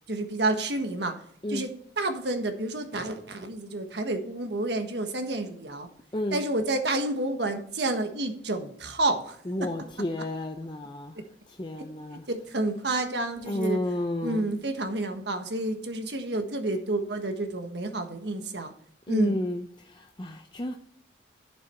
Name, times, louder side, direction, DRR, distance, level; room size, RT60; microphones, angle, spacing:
voice 1, 0.1-1.1 1.5-5.9 6.3-9.9 11.8-11.9 12.3-13.8 14.2-18.7 19.1-19.4, right 2 dB, 70° right, 1.4 m, -29 dB
voice 2, 9.5-11.1 11.6-12.2 13.5-14.4 19.1-19.6 20.0-20.8, left 1 dB, 25° left, 0.6 m, -31 dB
11.5 x 6.8 x 4.4 m
head